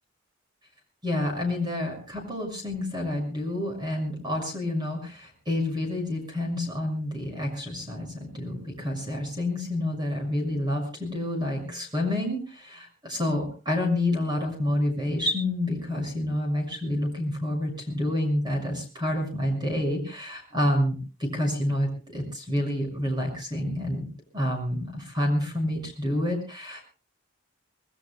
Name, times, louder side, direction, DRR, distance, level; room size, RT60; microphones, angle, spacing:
voice 1, 1.0-24.1 24.3-26.8, left 1 dB, 20° right, 2 dB, 6.2 m, -28 dB
28.0 x 20.0 x 2.2 m, 0.36 s
head